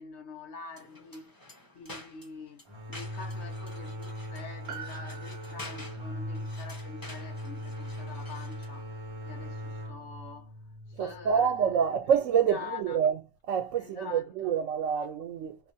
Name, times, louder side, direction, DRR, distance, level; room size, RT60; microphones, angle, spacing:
voice 1, 0.0-1.3 1.7-2.6 2.9-8.9 9.2-10.6 10.9-11.6 12.0-12.2 12.5-13.0 13.8-14.6, left 5 dB, 65° left, 1.2 m, -45 dB
sound 1, 0.7-8.8, left 2 dB, 20° left, 0.7 m, -49 dB
sound 2, 2.7-12.2, equal, 35° right, 0.5 m, -40 dB
Piano, 4.7-9.3 9.5-9.6, right 7 dB, 60° right, 0.8 m, -49 dB
voice 2, 11.0-13.2 13.5-15.6, right 7 dB, 85° right, 1.0 m, -27 dB
3.1 x 2.1 x 2.6 m
omnidirectional pair, 1.3 m